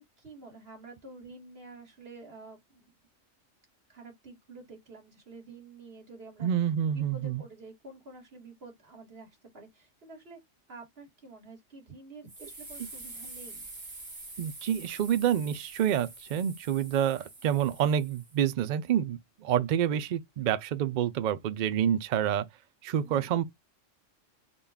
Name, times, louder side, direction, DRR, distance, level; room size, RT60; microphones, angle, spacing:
voice 1, 0.0-2.9 3.9-6.5 6.9-10.4 10.7-13.7 23.0-23.3, right 3 dB, 50° right, 1.9 m, -49 dB
voice 2, 6.4-7.4 14.4-22.5 22.8-23.4, right 9 dB, 85° right, 0.4 m, -28 dB
sound 1, 12.3-18.4, right 2 dB, 25° right, 1.2 m, -46 dB
4.0 x 2.2 x 3.3 m
omnidirectional pair, 1.3 m